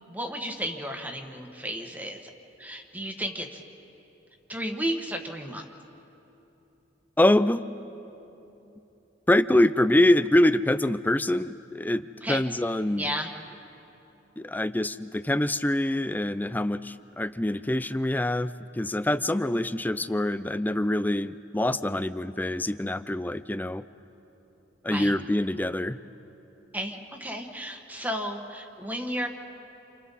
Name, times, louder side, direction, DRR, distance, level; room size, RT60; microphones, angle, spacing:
voice 1, 0.1-2.3 2.6-3.6 4.5-5.6 12.2-12.4 13.0-13.3 24.9-25.1 26.7-29.3, equal, 10° right, 3 dB, 1.4 m, -33 dB
voice 2, 7.2-7.6 9.3-13.1 14.4-23.8 24.8-26.0, left 1 dB, 10° left, 14 dB, 0.4 m, -25 dB
29.0 x 28.5 x 4.2 m, 3.0 s
head